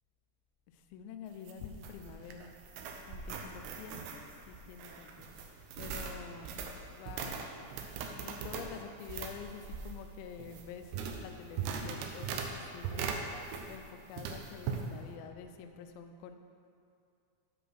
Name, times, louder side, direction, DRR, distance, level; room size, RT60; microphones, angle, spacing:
voice 1, 0.7-2.5 3.1-5.3 5.7-7.4 8.2-13.1 13.7-16.4, left 7 dB, 85° left, 7 dB, 2.8 m, -48 dB
sound 1, 1.3-13.9 14.2-14.9, right 6 dB, 85° right, 2.1 m, -40 dB
7.8 x 5.0 x 6.2 m, 2.4 s
omnidirectional pair, 4.9 m